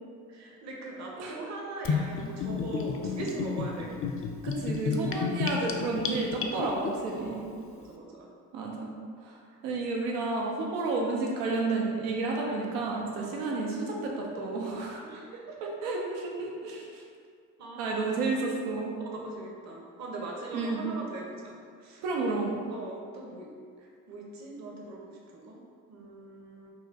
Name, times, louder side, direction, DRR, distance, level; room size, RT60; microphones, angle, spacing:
voice 1, 0.3-4.1 7.2-8.3 9.5-9.6 13.2-13.5 15.0-15.6 17.6-18.1 19.0-22.3 22.7-23.5 23.8-25.6 25.9-26.7, right 2 dB, 45° right, -2 dB, 0.7 m, -41 dB
Gurgling / Bathtub (filling or washing), 1.8-6.9, left 5 dB, 35° left, 0.4 m, -31 dB
voice 2, 4.4-7.4 8.5-8.9 9.2-9.4 9.6-15.0 15.6-17.0 17.8-19.0 20.5-20.8 22.0-22.6, right 3 dB, 90° right, -1 dB, 0.6 m, -31 dB
4.0 x 2.3 x 2.8 m, 2.1 s
hypercardioid pair, 45°, 39 cm